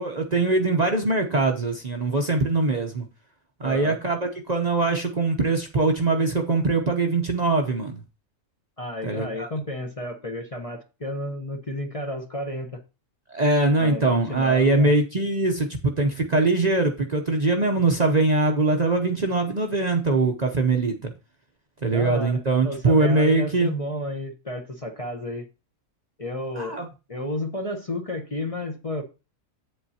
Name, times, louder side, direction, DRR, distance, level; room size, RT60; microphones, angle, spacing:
voice 1, 0.0-3.1 3.6-4.2 4.5-8.0 9.0-9.5 13.3-21.1 21.8-23.7 26.6-26.9, right 3 dB, 40° right, 0.8 m, -22 dB
voice 2, 3.6-4.0 8.8-12.8 13.8-14.9 21.8-25.5 26.2-26.8 27.1-29.0, left 1 dB, 30° left, 0.8 m, -32 dB
8.4 x 7.8 x 2.8 m
omnidirectional pair, 1.4 m